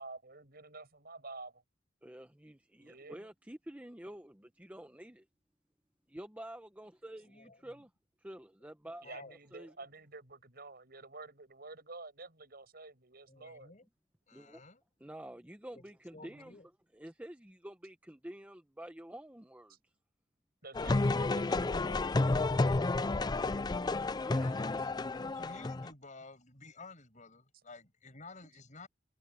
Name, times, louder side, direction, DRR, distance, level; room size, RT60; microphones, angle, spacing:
voice 1, 0.0-1.6 2.8-3.3 9.0-13.7 19.7-19.8 20.6-22.3, right 3 dB, 55° right, 7.7 m, -50 dB
voice 2, 2.0-5.2 6.1-7.9 8.2-9.1 9.5-9.7 14.3-14.6 15.0-16.6 16.9-19.9 24.2-24.8, right 1 dB, 10° right, 0.9 m, -49 dB
voice 3, 9.0-9.4 13.3-13.8 14.3-14.8 15.7-16.6 24.0-28.9, left 3 dB, 40° left, 6.8 m, -53 dB
sound 1, 20.7-25.9, left 2 dB, 20° left, 0.4 m, -31 dB
head